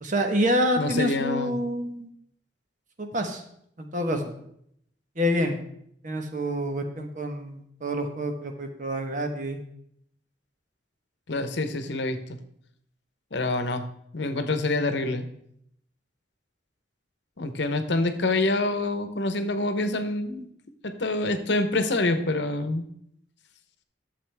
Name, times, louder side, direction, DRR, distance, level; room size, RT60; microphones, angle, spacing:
voice 1, 0.0-2.1 3.0-3.4 3.8-4.3 5.2-5.6 6.0-9.6, equal, 45° right, 5 dB, 1.2 m, -27 dB
voice 2, 0.8-1.6 11.3-12.4 13.3-13.8 14.1-15.3 17.4-20.5 20.8-22.8, left 2 dB, 70° left, 9 dB, 0.9 m, -26 dB
12.0 x 7.2 x 3.4 m, 0.71 s
head